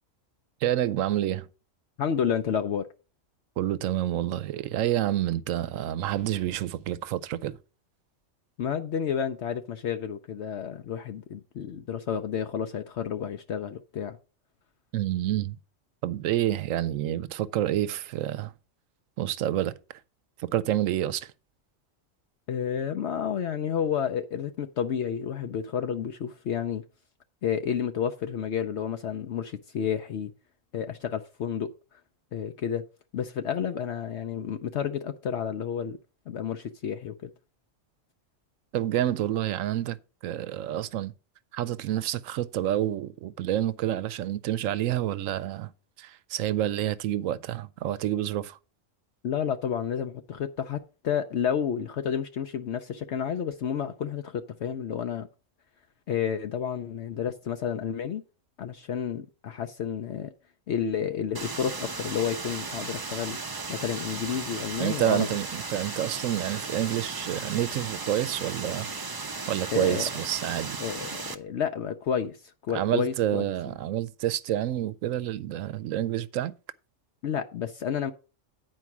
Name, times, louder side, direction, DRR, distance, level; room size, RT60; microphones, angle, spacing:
voice 1, 0.6-1.5 3.6-7.6 14.9-15.6 16.0-18.5 19.2-19.8 20.4-21.3 38.7-40.0 40.2-41.1 41.5-45.7 46.0-48.6 64.8-68.9 69.5-70.8 72.7-76.5, right 12 dB, 80° right, 1.0 m, -28 dB
voice 2, 2.0-2.9 8.6-14.2 22.5-26.8 27.4-30.3 30.7-31.7 32.3-32.8 33.1-36.0 36.3-37.3 49.2-55.3 56.1-58.2 58.6-60.3 60.7-63.4 63.7-65.3 69.7-70.1 70.8-73.5 77.2-78.1, left 8 dB, 65° left, 0.9 m, -30 dB
sound 1, 61.3-71.3, right 3 dB, 30° right, 0.4 m, -36 dB
9.5 x 4.6 x 5.9 m
omnidirectional pair, 1.3 m